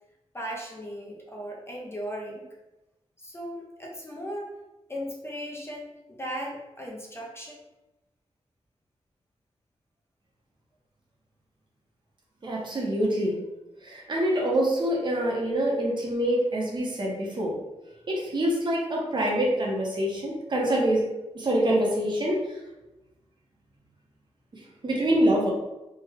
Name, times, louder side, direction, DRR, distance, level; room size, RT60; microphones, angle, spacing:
voice 1, 0.3-2.5 3.2-4.5 4.9-7.6, equal, 20° left, -2 dB, 0.5 m, -37 dB
voice 2, 12.4-13.4 13.8-17.6 18.1-21.1 21.3-22.6 24.5-25.5, right 1 dB, 45° right, -3 dB, 0.8 m, -25 dB
3.3 x 2.2 x 3.4 m, 1.0 s
wide cardioid pair, 140°, 11 cm